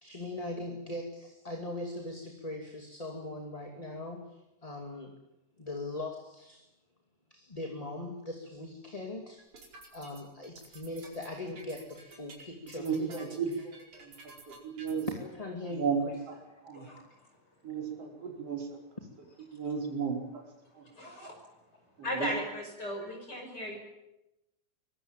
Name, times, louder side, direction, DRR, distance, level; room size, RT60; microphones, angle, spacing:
voice 1, 0.0-4.3 4.6-5.1 5.6-6.6 7.3-9.4 9.9-13.2 15.0-15.9 23.0-23.1, left 2 dB, 15° left, 2 dB, 2.4 m, -40 dB
sound 1, 9.4-15.1, right 3 dB, 80° right, 6.3 m, -51 dB
voice 2, 12.6-14.1 14.5-15.1 15.7-16.4 16.6-16.9 17.6-18.8 19.5-20.4 20.7-20.8 22.0-22.3, right 6 dB, 55° right, 1 dB, 5.9 m, -34 dB
voice 3, 16.7-17.3 19.5-19.6 20.7-21.6 22.0-23.8, equal, 35° left, 1 dB, 6.2 m, -38 dB
24.0 x 21.5 x 9.1 m, 0.92 s
omnidirectional pair, 3.4 m